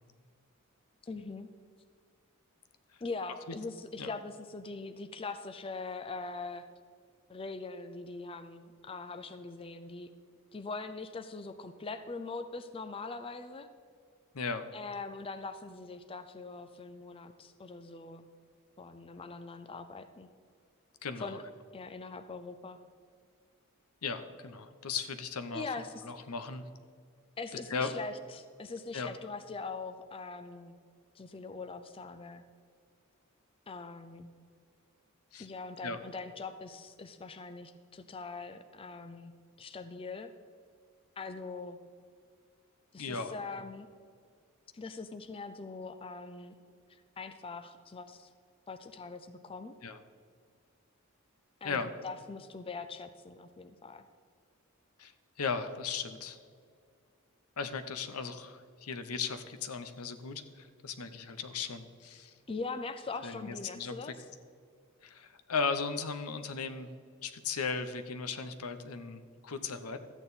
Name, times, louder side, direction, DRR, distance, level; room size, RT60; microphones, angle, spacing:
voice 1, 1.0-1.5 3.0-6.7 7.3-10.1 10.5-13.7 14.7-18.3 18.8-20.3 21.2-21.4 21.7-22.8 25.5-26.0 27.4-30.8 31.1-32.4 33.7-34.3 35.4-39.3 39.6-40.3 41.2-41.8 42.9-43.9 44.7-46.5 46.9-48.3 48.7-49.7 51.6-54.1 62.5-64.2, left 4 dB, 25° left, 9 dB, 0.4 m, -42 dB
voice 2, 14.3-14.7 21.0-21.4 24.0-25.6 26.0-26.6 27.7-27.9 28.9-29.1 35.3-35.5 35.8-36.0 43.0-43.3 49.8-50.0 51.6-51.9 55.0-55.1 55.4-56.4 57.6-62.3 63.2-63.9 65.0-66.9 67.2-70.0, left 5 dB, 80° left, 10 dB, 0.8 m, -36 dB
13.0 x 9.0 x 4.1 m, 2.1 s
head